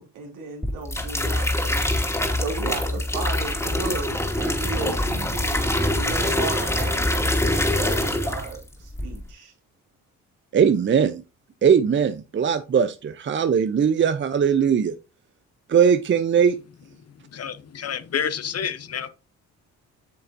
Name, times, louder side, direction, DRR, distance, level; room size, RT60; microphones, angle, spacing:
voice 1, 0.0-1.8 2.4-9.5, right 4 dB, 80° right, 3.2 m, -35 dB
sound 1, 0.6-8.6 8.9-9.3, left 1 dB, 10° left, 2.4 m, -24 dB
voice 2, 10.5-11.2 11.6-14.9 15.7-16.6, right 7 dB, 35° right, 0.7 m, -20 dB
voice 3, 17.0-19.1, left 7 dB, 50° left, 1.0 m, -29 dB
8.7 x 6.4 x 2.7 m
supercardioid pair, 70°, 32 cm